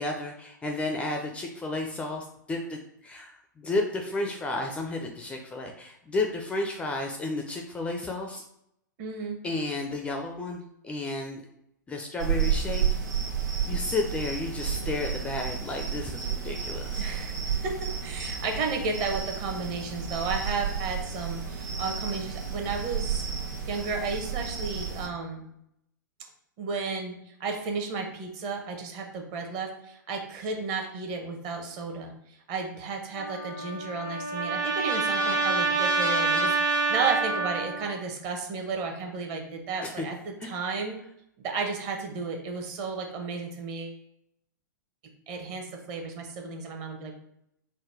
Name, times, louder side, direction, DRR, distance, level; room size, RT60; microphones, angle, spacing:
voice 1, 0.0-3.3 3.6-8.4 9.4-11.4 11.9-12.8 13.6-17.0 39.8-40.1 40.4-40.5, left 2 dB, 10° left, 2 dB, 0.4 m, -32 dB
voice 2, 9.0-9.4 17.0-23.3 23.7-25.4 26.6-27.1 27.4-32.1 32.5-41.0 41.4-44.0 45.3-47.1, right 4 dB, 35° right, 3 dB, 0.9 m, -33 dB
sound 1, 12.2-25.1, right 7 dB, 60° right, 1.2 m, -31 dB
Trumpet, 33.2-38.0, right 3 dB, 80° right, 1.4 m, -27 dB
3.9 x 2.1 x 4.4 m, 0.78 s
figure-of-eight pair, 110°, 11 cm